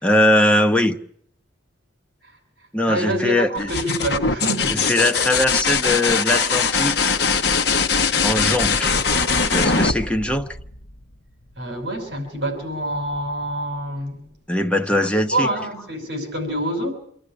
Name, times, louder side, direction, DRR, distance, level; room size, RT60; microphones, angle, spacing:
voice 1, 0.0-1.0 2.7-3.7 4.7-7.1 8.2-9.0 9.5-10.6 14.5-15.5, left 1 dB, 5° left, 0.9 m, -20 dB
voice 2, 2.9-4.8 11.6-14.3 15.3-16.9, right 1 dB, 55° right, 5.7 m, -26 dB
sound 1, 3.5-11.1 12.9-13.5, left 5 dB, 55° left, 1.1 m, -21 dB
26.0 x 12.0 x 10.0 m
head